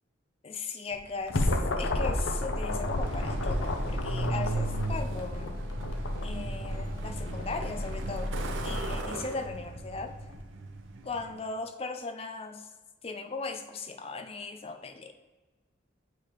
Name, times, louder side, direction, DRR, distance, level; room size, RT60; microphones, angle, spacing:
voice 1, 0.4-5.6 6.2-8.4 8.6-10.1 11.0-12.7 13.0-15.1, left 4 dB, 30° left, 6 dB, 0.4 m, -38 dB
sound 1, 0.9-10.4, left 1 dB, 80° left, 0.6 m, -34 dB
sound 2, 1.2-9.1, left 1 dB, 50° right, 0.8 m, -36 dB
Truck, 2.7-11.4, right 2 dB, 80° right, 0.6 m, -37 dB
6.8 x 4.7 x 3.0 m, 1.2 s
head